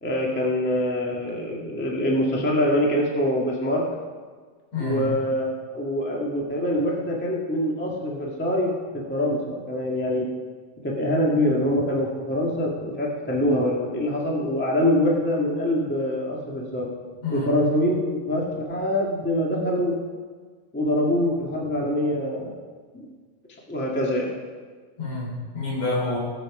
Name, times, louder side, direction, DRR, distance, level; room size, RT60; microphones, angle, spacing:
voice 1, 0.0-3.8 4.8-5.5 5.7-10.3 10.8-16.9 17.3-19.9 20.7-22.6 22.9-23.1 23.7-24.3, left 1 dB, 10° left, -2 dB, 0.5 m, -24 dB
voice 2, 4.7-5.1 17.2-17.5 25.0-26.2, left 2 dB, 55° left, -4 dB, 4.9 m, -28 dB
19.5 x 7.5 x 4.9 m, 1.5 s
omnidirectional pair, 3.9 m